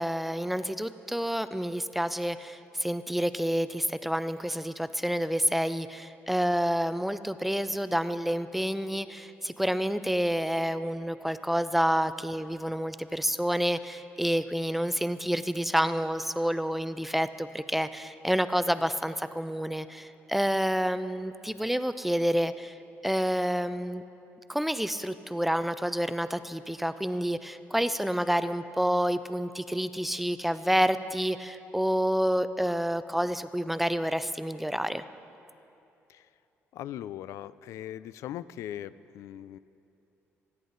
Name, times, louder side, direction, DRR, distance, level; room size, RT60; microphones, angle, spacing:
voice 1, 0.0-22.8 23.0-24.0 24.5-35.0, equal, 5° right, 12 dB, 0.3 m, -29 dB
voice 2, 36.7-39.6, left 11 dB, 80° left, 17 dB, 0.4 m, -40 dB
28.0 x 10.0 x 3.9 m, 2.9 s
cardioid pair, 165°, 5 cm